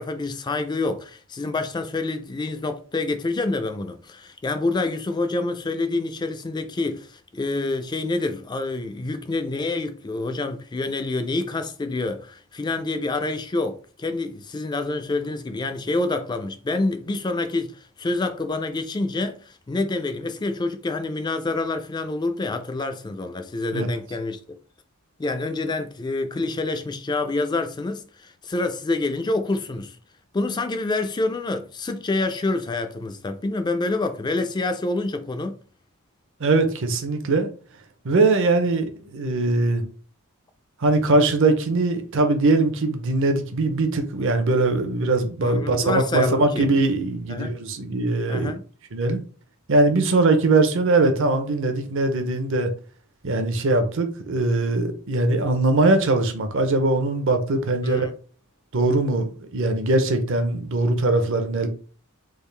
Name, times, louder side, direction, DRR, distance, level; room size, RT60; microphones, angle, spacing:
voice 1, 0.0-24.4 25.2-30.0 30.3-35.6 45.4-46.7 47.3-47.5 48.3-48.6 57.8-58.1, left 2 dB, 20° left, 0.3 m, -27 dB
voice 2, 36.4-37.5 38.0-39.8 40.8-48.5 48.9-49.2 49.7-52.7 53.2-58.1 58.7-61.7, right 2 dB, 60° right, 0.6 m, -21 dB
3.6 x 2.4 x 3.2 m
head